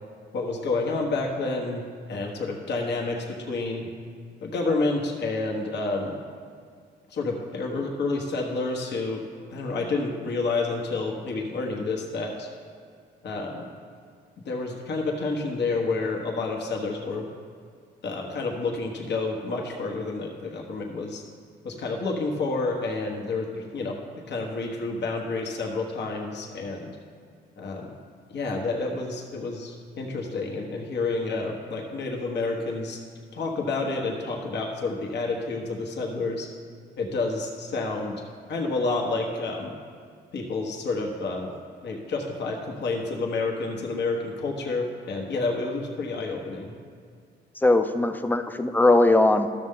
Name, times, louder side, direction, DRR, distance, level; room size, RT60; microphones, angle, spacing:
voice 1, 0.3-3.9 4.4-6.2 7.1-9.2 9.5-12.5 13.2-13.7 14.4-17.3 18.0-21.2 21.6-24.0 24.3-27.0 27.6-27.9 28.3-33.0 33.3-36.5 37.0-38.2 38.5-39.7 40.3-41.5 41.8-46.7, left 3 dB, 60° left, 0 dB, 1.2 m, -29 dB
voice 2, 47.6-49.5, left 2 dB, 10° left, 9 dB, 0.5 m, -20 dB
12.0 x 6.6 x 3.6 m, 2.1 s
cardioid pair, 90°, 20 cm